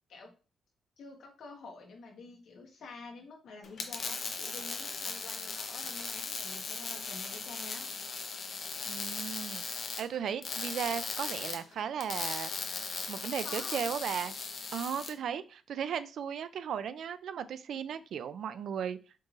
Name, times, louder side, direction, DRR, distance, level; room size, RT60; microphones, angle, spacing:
voice 1, 1.0-7.9 13.4-13.9, left 4 dB, 70° left, 1 dB, 1.1 m, -48 dB
sound 1, 3.6-15.1, left 4 dB, 55° left, 0.7 m, -38 dB
voice 2, 8.8-9.6 10.0-12.5 13.1-14.3 14.7-19.0, right 8 dB, 70° right, 13 dB, 0.3 m, -36 dB
4.5 x 3.1 x 2.5 m, 0.34 s
cardioid pair, 120°, 0 cm